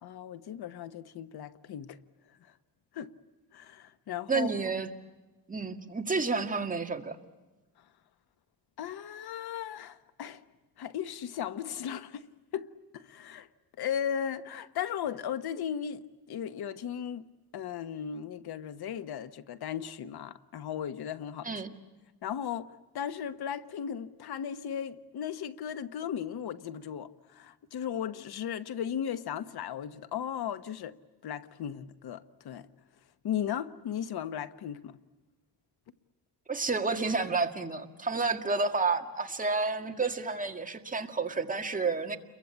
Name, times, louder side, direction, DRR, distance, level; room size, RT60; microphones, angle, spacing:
voice 1, 0.0-2.0 2.4-2.5 2.9-3.1 3.5-4.5 8.8-10.4 10.8-12.3 12.5-13.5 13.8-17.3 17.5-21.5 22.2-31.0 31.2-32.7 33.2-35.0, left 9 dB, 85° left, 1.2 m, -36 dB
voice 2, 4.3-4.9 5.5-7.2 21.4-21.7 36.5-42.2, right 4 dB, 20° right, 2.0 m, -30 dB
30.0 x 23.0 x 8.6 m
wide cardioid pair, 140°, 37 cm